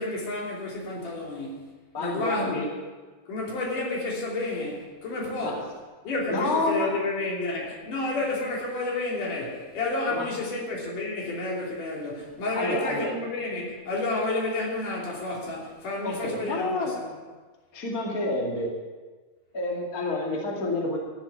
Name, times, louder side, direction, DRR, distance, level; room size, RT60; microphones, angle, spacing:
voice 1, 0.0-1.7 2.0-2.7 3.3-5.7 6.0-17.1, left 2 dB, 50° left, -3 dB, 4.2 m, -30 dB
voice 2, 1.9-2.7 5.4-5.6 6.3-6.9 10.1-10.2 12.5-13.1 16.0-16.9 17.7-18.7 19.5-21.0, left 2 dB, 30° left, -2 dB, 1.5 m, -28 dB
14.0 x 8.0 x 9.5 m, 1.4 s
omnidirectional pair, 5.3 m